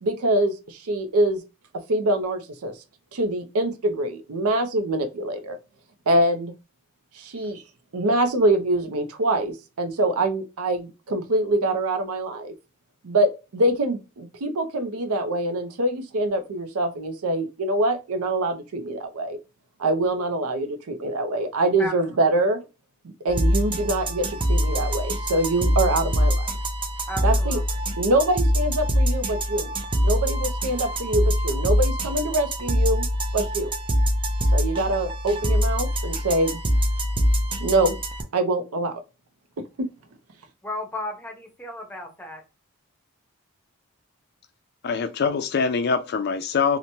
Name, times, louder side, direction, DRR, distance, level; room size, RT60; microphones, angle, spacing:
voice 1, 0.0-1.4 1.9-2.7 3.1-5.6 6.1-6.5 7.1-7.6 7.9-12.5 13.0-19.4 19.8-22.6 23.2-26.5 27.2-27.6 28.0-29.7 30.0-33.1 33.3-33.7 34.5-36.6 37.6-38.0 38.3-39.0 39.8-39.9, right 1 dB, 85° right, 0.6 m, -24 dB
sound 1, 23.3-38.2, equal, 25° right, 0.3 m, -24 dB
voice 2, 27.1-27.6 40.6-42.4, left 1 dB, 10° left, 0.6 m, -34 dB
voice 3, 44.8-46.8, left 5 dB, 50° left, 0.4 m, -24 dB
2.9 x 2.1 x 2.6 m
head